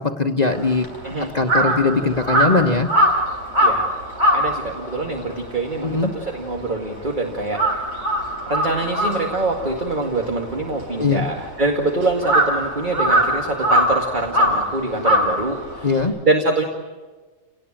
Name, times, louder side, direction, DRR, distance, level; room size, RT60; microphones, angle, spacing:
voice 1, 0.0-0.9 1.3-2.9 5.8-6.1 11.0-11.2 15.8-16.1, left 4 dB, 35° left, 3 dB, 1.1 m, -20 dB
Crow, 0.5-7.1 7.4-16.0, equal, 60° right, 4.5 m, -22 dB
voice 2, 4.3-7.9 8.5-16.6, right 2 dB, 35° right, 2 dB, 2.2 m, -24 dB
29.5 x 18.5 x 8.9 m, 1.4 s
omnidirectional pair, 1.4 m